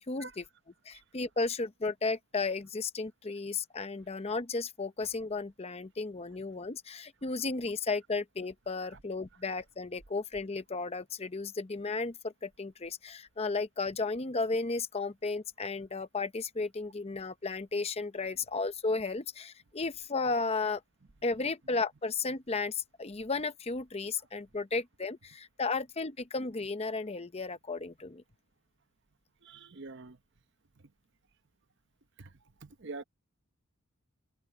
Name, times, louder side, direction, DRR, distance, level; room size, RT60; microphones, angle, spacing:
voice 1, 0.1-0.4 0.9-20.8 21.2-28.2, left 3 dB, 30° left, 0.7 m, -34 dB
voice 2, 29.4-30.2 30.8-30.9 32.2-32.3 32.6-33.0, right 3 dB, 55° right, 0.9 m, -45 dB
head